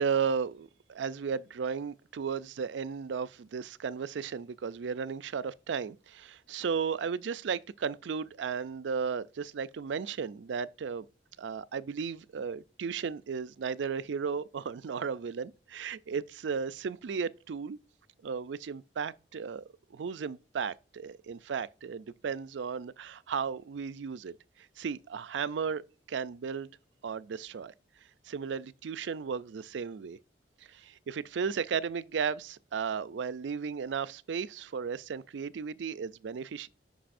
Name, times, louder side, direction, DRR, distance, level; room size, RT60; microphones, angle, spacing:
voice 1, 0.0-11.1 11.4-17.8 18.2-19.6 19.9-25.8 26.1-26.7 27.0-27.7 28.3-30.2 30.7-36.7, right 6 dB, 80° right, 0.4 m, -35 dB
10.0 x 5.4 x 2.6 m
head